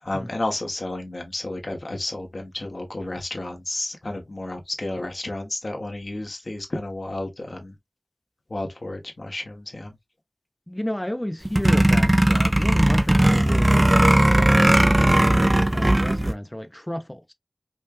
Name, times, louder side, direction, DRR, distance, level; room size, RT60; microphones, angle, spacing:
voice 1, 0.0-7.8 8.5-10.0, left 2 dB, 90° left, 1.2 m, -32 dB
voice 2, 10.7-15.2 15.7-17.3, left 1 dB, 20° left, 0.6 m, -31 dB
sound 1, 11.4-16.3, right 1 dB, 40° right, 0.5 m, -17 dB
5.3 x 2.3 x 2.5 m
wide cardioid pair, 45°, 0 cm